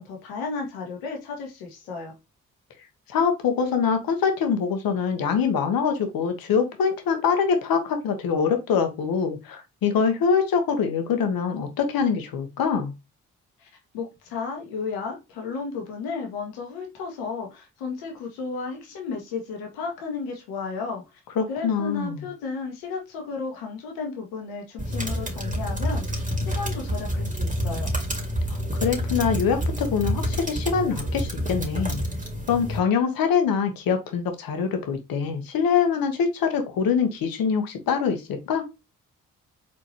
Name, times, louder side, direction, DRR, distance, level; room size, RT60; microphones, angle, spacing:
voice 1, 0.0-2.1 13.6-13.7 13.9-21.2 21.5-27.9, left 4 dB, 85° left, 2 dB, 1.4 m, -33 dB
voice 2, 3.1-12.9 21.3-22.2 28.5-32.0 32.5-38.7, left 6 dB, 70° left, 6 dB, 1.3 m, -24 dB
sound 1, 24.8-32.8, equal, 20° right, 2.2 m, -28 dB
4.4 x 3.6 x 3.1 m, 0.23 s
hypercardioid pair, 40°, 36 cm